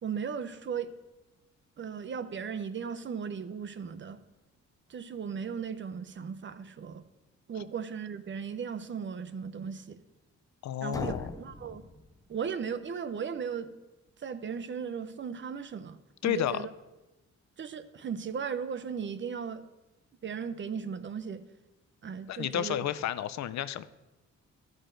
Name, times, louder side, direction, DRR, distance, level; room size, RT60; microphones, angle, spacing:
voice 1, 0.0-0.9 1.8-4.2 4.9-7.0 7.5-10.0 10.8-11.8 12.3-13.7 14.2-16.0 16.2-16.7 17.6-19.7 20.2-21.4 22.0-22.8, right 6 dB, 40° right, 12 dB, 0.6 m, -36 dB
voice 2, 10.6-11.3 16.2-16.7 22.3-23.9, left 11 dB, 70° left, 14 dB, 0.5 m, -31 dB
sound 1, 10.9-12.8, left 3 dB, 10° left, 0.4 m, -41 dB
12.5 x 11.0 x 2.6 m, 1.1 s
cardioid pair, 95°, 29 cm